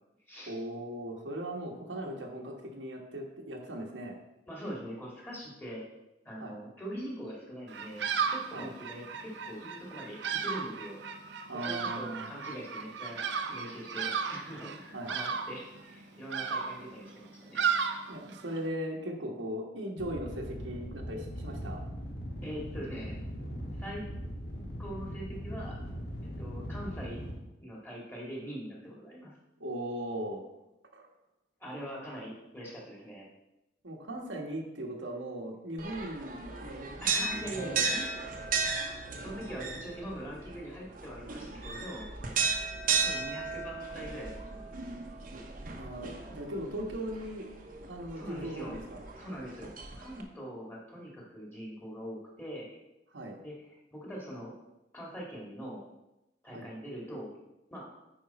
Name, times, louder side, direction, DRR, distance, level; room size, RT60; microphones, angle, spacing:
voice 1, 0.5-4.2 6.4-6.6 8.5-8.7 11.5-12.3 14.9-15.1 18.1-21.8 29.6-30.4 30.9-31.1 33.8-37.0 37.6-37.8 45.8-47.5 47.9-49.0 53.1-53.4 56.5-56.7, right 1 dB, 90° right, 0 dB, 1.4 m, -38 dB
voice 2, 4.5-5.8 6.2-11.0 11.5-17.7 22.4-23.1 23.8-24.0 24.8-25.8 26.4-27.2 27.6-29.3 31.6-33.3 37.0-38.2 39.2-42.1 43.0-44.9 48.2-48.8 49.2-49.7 50.0-52.7 53.4-54.5 54.9-55.8 56.4-57.3 57.7-57.8, equal, 10° left, -4 dB, 2.1 m, -42 dB
Bird vocalization bird call bird song, 7.7-18.7, right 6 dB, 75° right, 0.6 m, -35 dB
sound 1, 20.0-27.3, equal, 60° left, 1.6 m, -40 dB
sound 2, 35.8-50.2, right 5 dB, 45° right, 0.9 m, -35 dB
9.2 x 5.2 x 4.2 m, 0.94 s
head